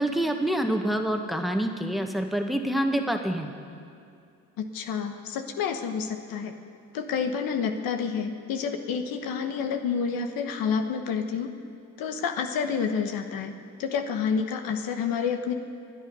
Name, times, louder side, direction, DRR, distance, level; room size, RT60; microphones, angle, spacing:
voice 1, 0.0-3.5, right 1 dB, ahead, 4 dB, 1.7 m, -26 dB
voice 2, 4.6-6.5 6.9-11.5 12.0-13.5 13.8-15.5, left 6 dB, 80° left, 6 dB, 1.2 m, -29 dB
26.5 x 9.6 x 5.5 m, 2.4 s
supercardioid pair, 60°, 35 cm